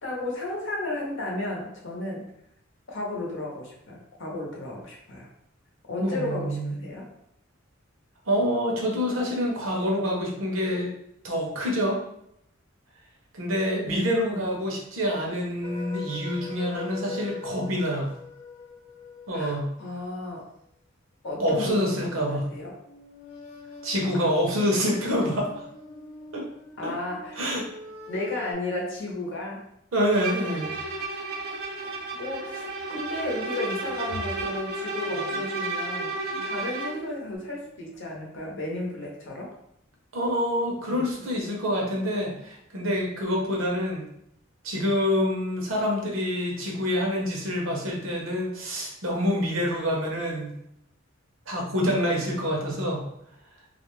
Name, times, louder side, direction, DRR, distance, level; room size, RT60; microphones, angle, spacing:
voice 1, 0.0-2.2 2.9-5.3 5.9-7.1 13.9-14.5 19.3-20.5 21.2-22.7 24.1-24.3 26.8-27.4 28.1-29.7 31.8-39.5 40.9-41.3, left 2 dB, 65° left, -2 dB, 0.7 m, -34 dB
voice 2, 6.0-6.7 8.3-10.9 11.2-12.0 13.3-18.1 19.3-19.7 21.4-22.5 23.8-25.5 26.3-26.5 26.8-26.9 27.4-27.7 29.9-30.7 40.1-44.0 44.6-50.5 51.5-53.0, equal, 70° right, -1 dB, 0.7 m, -26 dB
sound 1, 15.6-19.5 22.8-28.5, left 4 dB, 30° left, 0.5 m, -42 dB
Bowed string instrument, 30.1-37.1, right 3 dB, 50° right, 0.4 m, -32 dB
2.4 x 2.1 x 3.0 m, 0.74 s
head